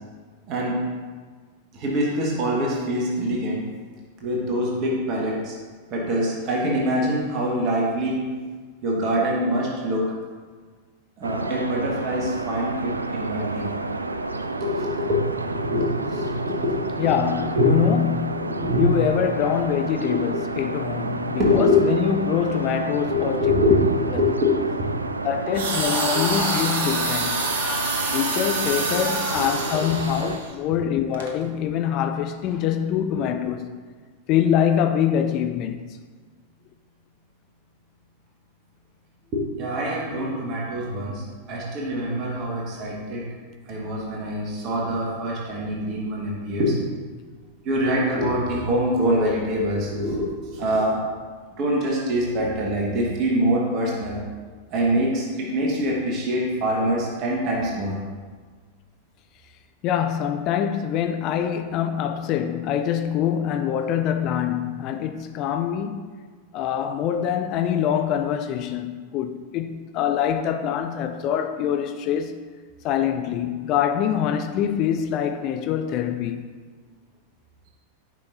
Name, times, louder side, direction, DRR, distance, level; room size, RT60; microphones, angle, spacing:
voice 1, 0.5-0.8 1.7-3.6 4.2-5.5 5.9-8.2 8.8-10.1 11.2-13.7 14.1-17.1 17.5-17.7 18.6-18.8 21.4-21.8 23.1-24.9 26.1-26.2 29.3-29.4 30.7-30.9 39.3-43.3 43.7-46.8 47.6-51.0 51.6-54.2 54.7-58.0, equal, 40° right, 1.5 m, -24 dB
sound 1, 11.2-30.4, right 3 dB, 80° right, 0.3 m, -31 dB
voice 2, 17.0-23.5 24.1-24.2 25.2-27.4 28.1-33.7 34.3-35.8 59.8-66.1 66.5-72.4 72.8-76.5, left 9 dB, 40° left, 0.4 m, -24 dB
Screaming, 25.4-30.3, left 3 dB, 20° left, 0.9 m, -31 dB
sound 2, 25.5-30.5 31.1-31.3, right 4 dB, 60° right, 0.9 m, -28 dB
9.1 x 5.6 x 2.6 m
figure-of-eight pair, 90°, 0 cm